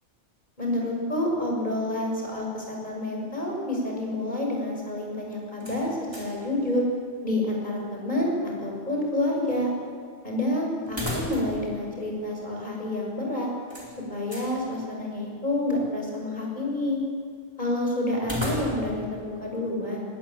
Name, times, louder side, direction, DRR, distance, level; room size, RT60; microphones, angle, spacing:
voice 1, 0.6-6.8 7.2-9.7 10.2-13.5 14.1-17.0 17.6-20.1, left 1 dB, 40° left, -1 dB, 6.4 m, -28 dB
sound 1, 5.6-6.5 6.8-6.9 10.9-11.7 12.0-12.1 13.7-14.5 18.2-19.0, left 1 dB, 20° right, 4.4 m, -34 dB
20.0 x 18.5 x 9.0 m, 2.3 s
omnidirectional pair, 1.2 m